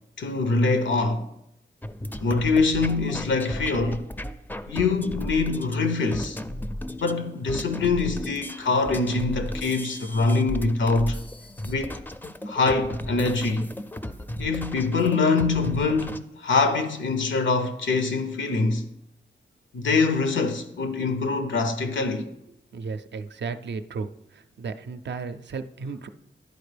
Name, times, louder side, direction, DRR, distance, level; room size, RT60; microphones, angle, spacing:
voice 1, 0.2-1.2 2.2-4.1 4.7-6.4 7.0-11.2 11.7-12.0 12.5-13.7 14.4-18.9 19.7-22.3, left 3 dB, 90° left, 0.7 m, -24 dB
sound 1, 1.8-16.2, left 1 dB, 10° left, 0.4 m, -35 dB
voice 2, 22.7-24.1 24.6-26.1, right 4 dB, 70° right, 0.4 m, -34 dB
10.5 x 4.3 x 3.4 m
wide cardioid pair, 70°, 19 cm